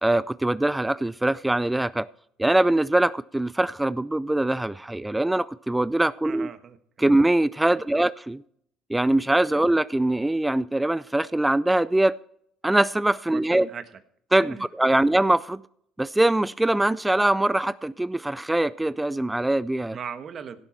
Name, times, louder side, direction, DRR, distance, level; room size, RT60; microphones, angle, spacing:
voice 1, 0.0-2.1 2.4-6.5 7.0-8.4 8.9-12.1 12.6-13.7 14.3-15.6 16.0-20.0, right 1 dB, 10° right, 18 dB, 0.3 m, -22 dB
voice 2, 6.2-7.1 7.7-8.0 9.5-9.6 13.3-14.0 14.4-14.6 14.9-15.0 19.9-20.6, right 7 dB, 45° right, 10 dB, 1.3 m, -39 dB
16.5 x 7.2 x 4.5 m, 0.67 s
supercardioid pair, 75°, 0 cm